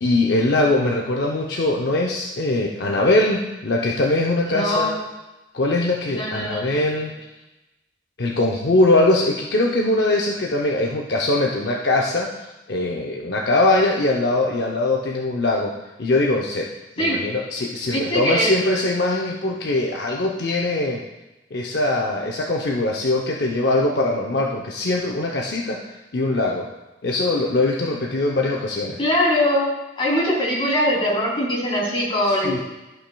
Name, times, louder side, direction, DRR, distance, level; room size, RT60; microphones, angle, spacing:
voice 1, 0.0-4.9 5.5-7.1 8.2-12.3 12.7-15.7 16.0-16.7 17.0-21.0 21.5-25.8 26.1-26.7 27.0-29.0 32.3-32.6, left 2 dB, 65° left, -1 dB, 0.7 m, -21 dB
voice 2, 4.5-5.0 6.1-6.8 17.0-17.2 17.9-18.5 29.0-29.7 30.0-32.6, left 1 dB, 30° left, -5 dB, 2.9 m, -22 dB
13.5 x 5.7 x 2.3 m, 1.0 s
head